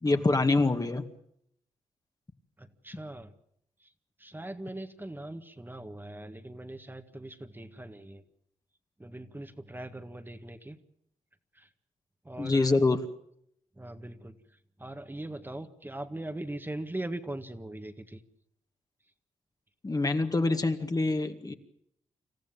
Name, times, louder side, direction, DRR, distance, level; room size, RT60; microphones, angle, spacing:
voice 1, 0.0-1.0 12.4-13.0 19.8-21.5, left 3 dB, 30° left, 6 dB, 2.1 m, -25 dB
voice 2, 2.6-3.3 3.8-3.9 4.2-8.2 9.0-10.8 11.5-11.7 12.2-12.9 13.8-14.4 14.8-18.2, right 1 dB, 15° right, 7 dB, 1.8 m, -40 dB
27.0 x 14.5 x 9.0 m, 0.71 s
cardioid pair, 60°, 13 cm